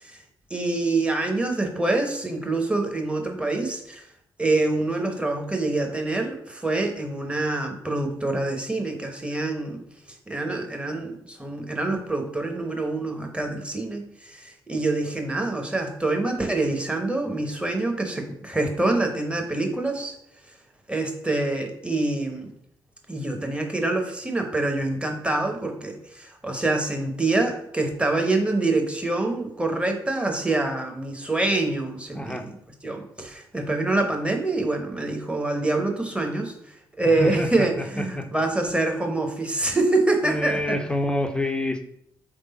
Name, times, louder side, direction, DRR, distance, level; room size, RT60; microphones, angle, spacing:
voice 1, 0.5-4.0 4.4-9.8 10.3-20.1 20.9-22.5 23.1-32.4 32.8-36.5 37.0-40.8, right 2 dB, 10° right, 4 dB, 1.0 m, -26 dB
voice 2, 32.1-32.4 37.0-38.3 40.2-41.8, left 1 dB, 10° left, 6 dB, 0.6 m, -27 dB
3.7 x 3.3 x 4.1 m, 0.75 s
figure-of-eight pair, 40°, 11 cm